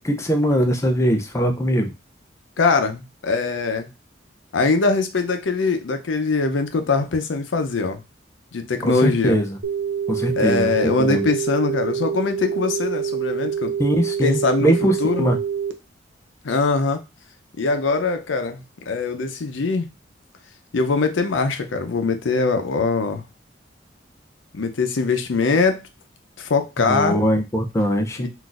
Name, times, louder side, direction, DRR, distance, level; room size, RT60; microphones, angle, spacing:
voice 1, 0.0-1.9 8.8-9.6 10.1-11.3 13.8-15.4 26.8-28.3, equal, 15° left, 4 dB, 0.4 m, -21 dB
voice 2, 2.6-3.9 4.5-8.0 8.5-9.4 10.4-13.7 14.2-15.3 16.4-17.0 17.6-19.9 20.7-23.2 24.5-25.8 26.4-27.2 28.2-28.3, left 4 dB, 85° left, 7 dB, 0.6 m, -22 dB
sound 1, 9.6-15.7, right 8 dB, 80° right, 0.5 m, -26 dB
3.9 x 2.5 x 2.4 m, 0.25 s
head